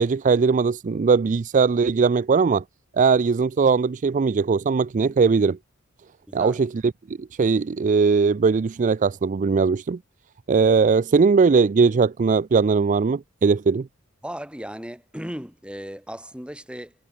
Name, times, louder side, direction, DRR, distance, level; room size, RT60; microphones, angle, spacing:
voice 1, 0.0-2.6 2.9-5.6 6.3-6.7 7.1-10.0 10.5-13.9, right 5 dB, 35° right, 0.4 m, -20 dB
voice 2, 6.3-6.6 14.2-16.9, equal, 5° right, 3.0 m, -36 dB
head